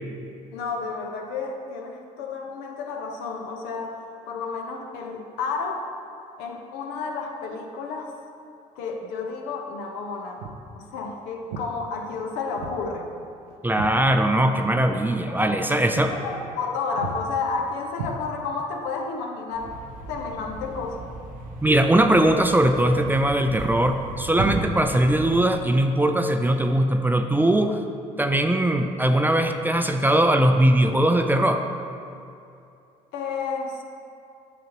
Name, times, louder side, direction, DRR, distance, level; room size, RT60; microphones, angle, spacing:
voice 1, 0.5-5.9 6.4-8.1 8.7-10.4 10.8-13.1 15.3-19.8 20.1-21.1 33.1-33.8, left 4 dB, 70° left, 3 dB, 0.8 m, -31 dB
Walk footsteps, 10.4-10.7 11.5-11.7 12.6-12.8 13.1-14.6 14.8-15.0 15.4-15.6 15.9-16.1 16.4-16.7 17.0-17.2 17.9-18.6, right 3 dB, 80° right, 0.6 m, -36 dB
voice 2, 13.6-16.1 21.6-27.8 28.2-31.6, right 1 dB, 10° right, 6 dB, 0.4 m, -20 dB
Thump thud, 19.5-25.7, right 2 dB, 50° right, 0.8 m, -35 dB
9.2 x 5.8 x 3.0 m, 2.6 s
hypercardioid pair, 60°, 18 cm